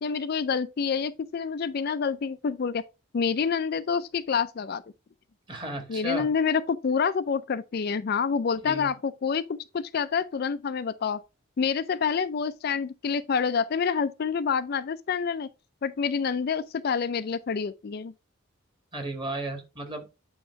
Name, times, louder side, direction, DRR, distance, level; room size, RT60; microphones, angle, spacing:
voice 1, 0.0-2.8 3.1-4.8 5.9-11.2 11.6-15.5 15.8-18.1, left 6 dB, 45° left, 0.3 m, -27 dB
voice 2, 5.5-6.3 8.6-8.9 18.9-20.2, right 1 dB, 20° right, 1.5 m, -34 dB
8.6 x 3.0 x 4.5 m
head